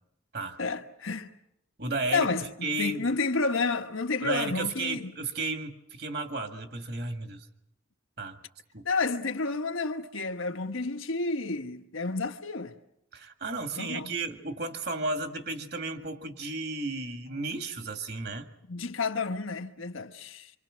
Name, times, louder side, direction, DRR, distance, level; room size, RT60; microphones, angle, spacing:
voice 1, 0.6-1.3 2.1-5.1 8.8-12.7 13.7-14.1 18.7-20.5, left 3 dB, 90° left, 1.4 m, -30 dB
voice 2, 1.8-3.1 4.2-7.5 8.2-8.4 8.7-8.9 13.1-18.5, right 3 dB, 50° right, 2.0 m, -33 dB
26.5 x 26.0 x 6.4 m
head